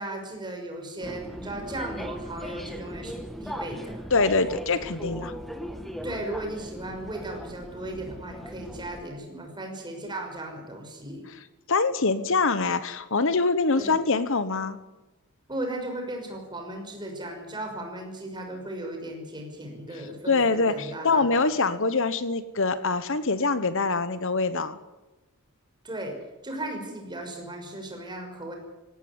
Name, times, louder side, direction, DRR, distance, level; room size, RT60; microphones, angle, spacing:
voice 1, 0.0-4.0 6.0-11.2 13.8-14.0 15.5-21.5 25.8-26.1 26.4-28.5, right 1 dB, 20° right, 2 dB, 5.9 m, -36 dB
sound 1, 1.0-9.0, equal, ahead, 1.9 m, -38 dB
voice 2, 4.1-5.3 11.7-14.8 20.3-24.8, left 3 dB, 60° left, 13 dB, 1.1 m, -24 dB
19.0 x 17.0 x 9.6 m, 1.1 s
head